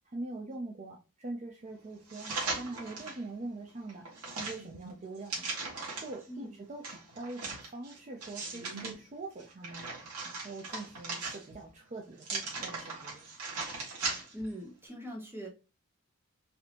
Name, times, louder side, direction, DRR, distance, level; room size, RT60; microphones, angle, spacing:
voice 1, 0.1-4.1 4.4-5.5 6.0-9.9 10.2-13.2, right 2 dB, 30° right, 0 dB, 0.5 m, -43 dB
sound 1, 2.1-3.2 3.7-6.2 6.8-8.9 9.4-11.7 12.2-14.5 14.9-15.0, right 3 dB, 80° right, 1.6 m, -39 dB
voice 2, 14.3-15.5, equal, 10° right, 1 dB, 0.9 m, -41 dB
4.2 x 2.7 x 2.9 m, 0.30 s
head